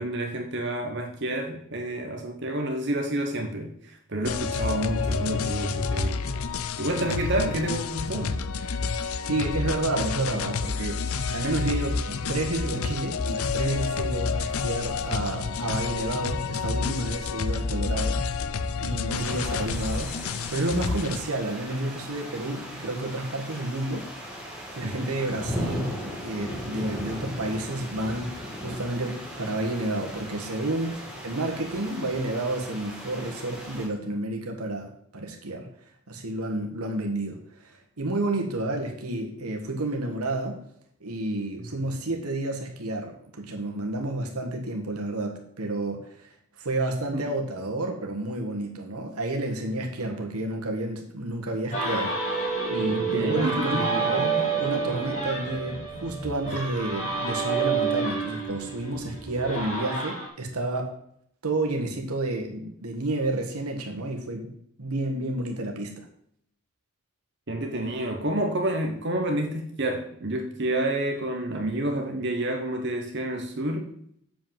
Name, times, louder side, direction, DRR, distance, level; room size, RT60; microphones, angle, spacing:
voice 1, 0.0-6.2 6.8-8.4 19.0-19.3 24.8-25.1 47.1-47.2 52.9-54.5 56.5-56.6 67.5-73.9, right 1 dB, 50° right, 3 dB, 1.1 m, -29 dB
sound 1, 4.2-21.2, left 4 dB, 75° left, 0.5 m, -29 dB
voice 2, 9.2-18.2 18.8-24.1 24.8-28.3 28.6-35.7 36.1-40.6 41.0-46.1 46.6-52.1 52.6-61.0 61.4-64.5 64.8-66.1, right 2 dB, 90° right, 2 dB, 1.6 m, -30 dB
sound 2, 19.1-33.9, equal, 5° right, 2.0 m, -37 dB
sound 3, 51.7-60.3, right 4 dB, 30° left, 3.0 m, -29 dB
7.4 x 5.3 x 7.4 m, 0.69 s
head